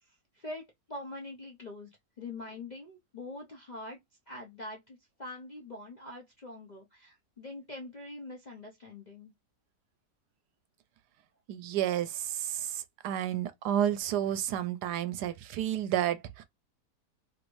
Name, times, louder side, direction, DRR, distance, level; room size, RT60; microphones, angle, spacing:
voice 1, 0.3-4.0 4.3-9.3, left 2 dB, 45° left, 0.5 m, -44 dB
voice 2, 11.5-16.4, right 11 dB, 80° right, 1.1 m, -31 dB
3.1 x 2.5 x 3.0 m
omnidirectional pair, 1.8 m